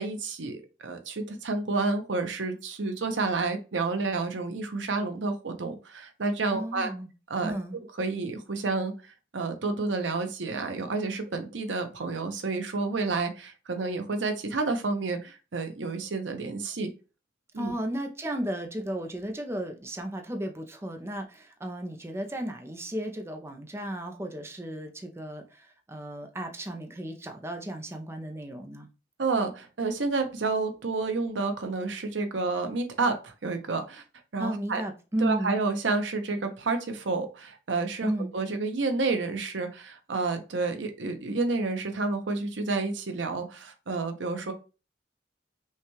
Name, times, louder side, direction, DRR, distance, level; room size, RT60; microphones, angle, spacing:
voice 1, 0.0-6.9 7.3-7.6 8.0-8.9 9.3-16.9 17.5-17.7 29.2-34.0 34.3-34.8 35.2-44.5, right 3 dB, 90° right, 0.7 m, -30 dB
voice 2, 6.5-7.1 7.4-7.8 17.6-28.9 34.4-35.6 38.0-38.3, right 1 dB, 15° right, 0.5 m, -34 dB
5.6 x 2.3 x 3.1 m
head